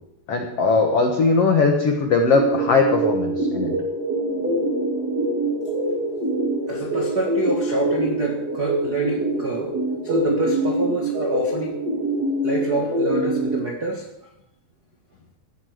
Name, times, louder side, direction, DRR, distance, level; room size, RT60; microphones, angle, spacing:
voice 1, 0.3-3.7, left 4 dB, 85° left, 3 dB, 1.3 m, -19 dB
sound 1, 2.3-13.6, right 1 dB, 30° right, 2.2 m, -24 dB
voice 2, 6.7-9.7 10.0-11.8 12.4-14.1, right 3 dB, 90° right, 0 dB, 0.8 m, -26 dB
16.0 x 12.0 x 5.0 m, 0.83 s
omnidirectional pair, 4.9 m